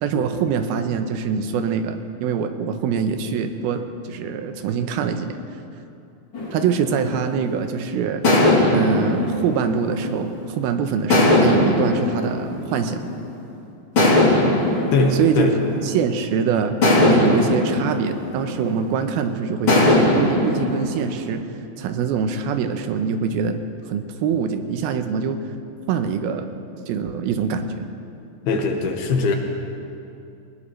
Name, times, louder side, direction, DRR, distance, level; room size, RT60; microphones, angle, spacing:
voice 1, 0.0-3.8 4.1-5.4 6.5-8.2 8.7-13.1 15.2-15.5 15.8-21.4 21.8-23.6 23.9-25.4 25.9-26.5 26.9-27.9, right 6 dB, 90° right, 7 dB, 2.8 m, -24 dB
sound 1, 6.3-7.6 8.2-10.5 11.1-13.3 14.0-16.2 16.8-19.1 19.7-21.3, left 2 dB, 35° left, 3.6 m, -20 dB
voice 2, 14.9-15.6 28.5-29.4, left 3 dB, 85° left, 3 dB, 3.3 m, -21 dB
21.0 x 20.0 x 3.3 m, 2.6 s
omnidirectional pair, 4.3 m